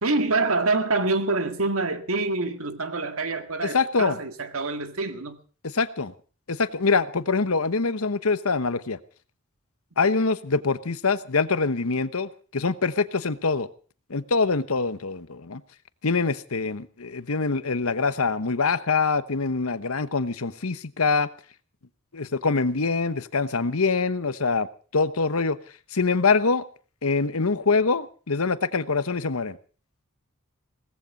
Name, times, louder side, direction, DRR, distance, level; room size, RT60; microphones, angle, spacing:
voice 1, 0.0-5.4, right 3 dB, 70° right, 1.9 m, -26 dB
voice 2, 3.6-4.2 5.6-6.1 6.5-9.0 10.0-13.7 14.1-15.6 16.0-21.3 22.1-24.7 24.9-25.6 25.9-26.6 27.0-29.6, left 4 dB, 80° left, 1.1 m, -24 dB
18.0 x 15.0 x 5.3 m
head